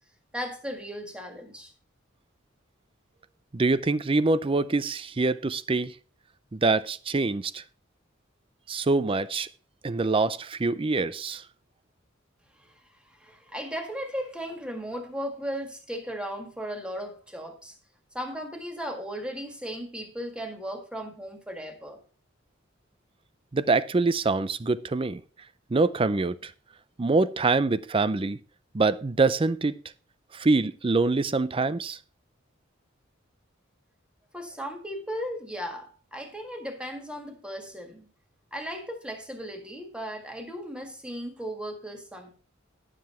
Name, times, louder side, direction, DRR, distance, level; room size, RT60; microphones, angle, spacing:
voice 1, 0.3-1.7 12.6-12.8 13.1-17.8 18.1-22.0 34.3-38.1 38.5-42.3, equal, 5° right, 1.9 m, -36 dB
voice 2, 3.5-5.9 6.5-7.6 8.7-9.5 9.8-11.4 23.5-25.2 25.7-26.5 27.0-28.4 28.7-29.8 30.3-32.0, right 3 dB, 25° right, 0.5 m, -25 dB
11.5 x 7.5 x 4.4 m
head